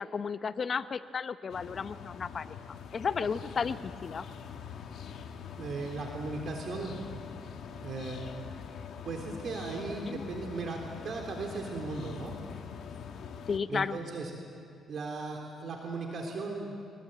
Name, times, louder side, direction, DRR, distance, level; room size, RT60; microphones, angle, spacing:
voice 1, 0.0-2.5 2.9-4.3 10.1-10.3 13.5-14.0, left 5 dB, 45° left, 12 dB, 0.9 m, -33 dB
sound 1, 1.5-13.6, left 7 dB, 70° left, 2.0 m, -44 dB
voice 2, 5.5-7.2 7.8-8.2 9.0-12.3 13.7-14.3 14.9-16.8, right 3 dB, 60° right, 1 dB, 3.4 m, -37 dB
24.0 x 21.5 x 8.9 m, 2.4 s
cardioid pair, 90°, 0 cm